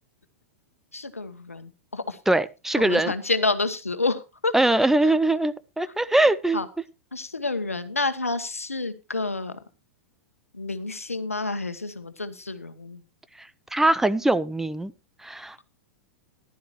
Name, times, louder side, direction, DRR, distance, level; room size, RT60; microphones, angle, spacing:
voice 1, 0.9-2.2 2.8-4.6 5.0-5.1 5.9-6.0 6.2-6.7 7.1-9.6 10.5-13.0, left 3 dB, 90° left, 11 dB, 1.2 m, -29 dB
voice 2, 2.3-3.1 4.5-6.6 13.4-13.5 13.7-14.9 15.2-15.6, right 2 dB, 5° right, 15 dB, 0.5 m, -22 dB
14.5 x 12.0 x 3.1 m, 0.27 s
figure-of-eight pair, 100°, 7 cm